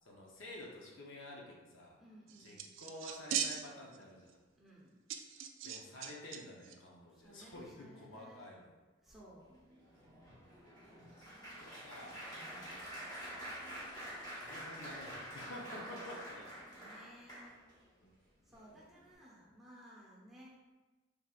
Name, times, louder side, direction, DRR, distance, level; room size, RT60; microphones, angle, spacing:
voice 1, 0.0-2.0 2.4-4.4 5.6-8.8 11.2-12.3 14.3-16.5 18.0-18.1 18.7-18.9, left 1 dB, 65° left, -2 dB, 0.7 m, -50 dB
voice 2, 2.0-2.7 4.5-5.0 7.1-8.5 9.0-9.6 12.4-12.9 16.4-17.6 18.4-20.6, equal, ahead, -6 dB, 0.8 m, -58 dB
sound 1, 2.3-4.0 4.3-4.4 5.1-6.4 6.6-6.7, right 8 dB, 65° right, 0.3 m, -39 dB
Applause, 9.5-17.8 18.4-18.7 19.0-19.1, equal, 20° left, 1.0 m, -48 dB
4.5 x 3.4 x 2.4 m, 1.2 s
head